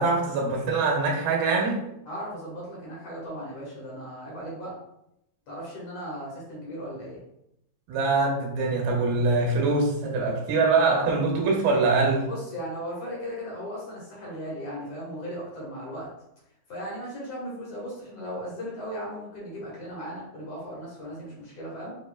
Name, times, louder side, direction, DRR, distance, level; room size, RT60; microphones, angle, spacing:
voice 1, 0.0-1.8 7.9-12.3, right 3 dB, 85° right, -1 dB, 2.9 m, -23 dB
voice 2, 2.1-4.8 5.5-7.2 12.3-16.1 16.7-21.9, equal, 55° left, -5 dB, 2.0 m, -37 dB
7.9 x 2.9 x 2.3 m, 0.82 s
omnidirectional pair, 4.2 m